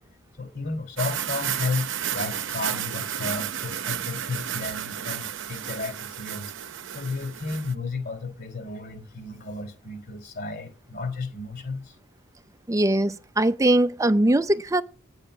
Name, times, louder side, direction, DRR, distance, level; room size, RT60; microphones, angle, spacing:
voice 1, 0.4-1.9 2.1-6.5 6.9-12.0, left 3 dB, 50° left, 3.1 m, -33 dB
sound 1, 1.0-7.7, right 10 dB, 60° right, 0.8 m, -32 dB
voice 2, 12.7-14.8, right 1 dB, 15° right, 0.5 m, -21 dB
9.2 x 7.9 x 9.2 m
head